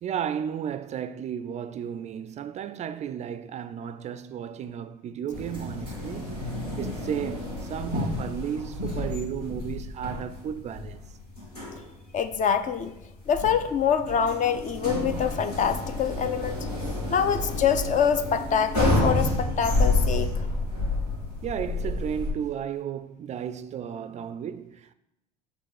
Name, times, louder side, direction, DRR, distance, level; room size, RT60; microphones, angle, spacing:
voice 1, 0.0-11.2 21.4-24.9, right 9 dB, 35° right, 0.4 m, -34 dB
sound 1, 5.3-22.3, left 2 dB, 85° left, 2.8 m, -30 dB
voice 2, 12.1-12.9 13.3-16.6 17.1-20.3, left 7 dB, 40° left, 0.6 m, -25 dB
7.8 x 4.2 x 4.8 m
hypercardioid pair, 65°, 20 cm